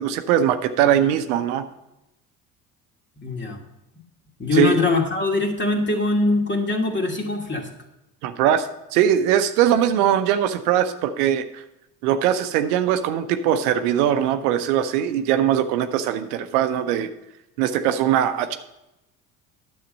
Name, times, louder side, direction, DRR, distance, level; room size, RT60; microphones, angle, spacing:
voice 1, 0.0-1.7 4.5-4.8 8.2-11.6 12.0-17.1 17.6-18.5, right 10 dB, 75° right, 9 dB, 0.8 m, -21 dB
voice 2, 3.2-3.6 4.4-7.7, left 3 dB, 25° left, 2 dB, 2.4 m, -22 dB
10.0 x 7.4 x 5.3 m, 0.91 s
hypercardioid pair, 60°, 46 cm